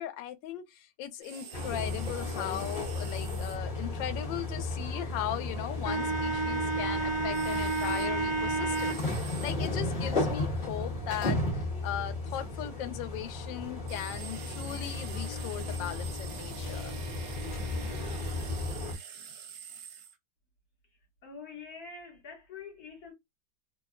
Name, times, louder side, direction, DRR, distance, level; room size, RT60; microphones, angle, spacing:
voice 1, 0.0-16.9, left 11 dB, 85° left, 1.3 m, -38 dB
sound 1, 1.2-3.6 7.3-8.1 8.7-9.6 13.9-20.2, right 7 dB, 65° right, 0.9 m, -46 dB
sound 2, 1.5-18.9, equal, 35° left, 0.9 m, -33 dB
voice 2, 21.2-23.1, left 5 dB, 60° left, 1.4 m, -45 dB
3.1 x 2.0 x 2.4 m
omnidirectional pair, 2.0 m